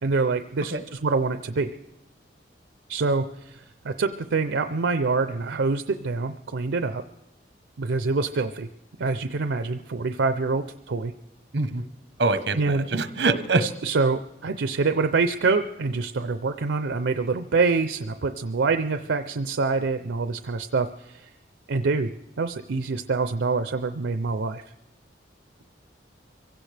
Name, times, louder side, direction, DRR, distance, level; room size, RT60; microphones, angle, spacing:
voice 1, 0.0-1.7 2.9-7.0 7.8-8.7 9.0-11.1 12.5-12.9 13.6-21.3 21.7-22.1 22.4-24.6, right 4 dB, 90° right, 9 dB, 0.5 m, -25 dB
voice 2, 12.2-13.7, right 3 dB, 75° right, 11 dB, 0.9 m, -24 dB
25.0 x 16.5 x 3.3 m, 0.94 s
head